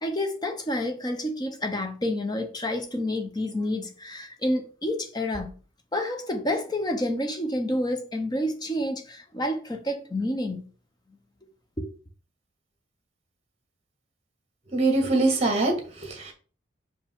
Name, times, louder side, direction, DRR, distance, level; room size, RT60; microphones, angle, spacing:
voice 1, 0.0-5.5 5.9-10.7 11.8-11.9, left 1 dB, 20° left, 0.8 m, -29 dB
voice 2, 14.7-16.3, right 2 dB, 30° right, 1.5 m, -23 dB
5.9 x 5.0 x 3.7 m
head